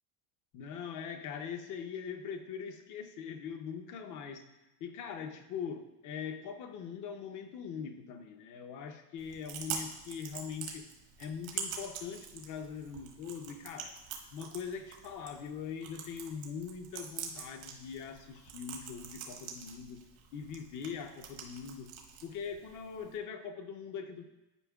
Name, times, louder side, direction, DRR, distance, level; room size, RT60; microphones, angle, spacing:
voice 1, 0.5-4.5 4.8-10.9 11.2-13.9 14.3-20.0 20.3-21.9 22.2-24.2, left 7 dB, 40° left, 7 dB, 0.7 m, -42 dB
Chewing mastication, 9.2-23.2, right 7 dB, 85° right, 1.4 m, -45 dB
11.0 x 4.9 x 2.3 m, 0.98 s
cardioid pair, 140°, 46 cm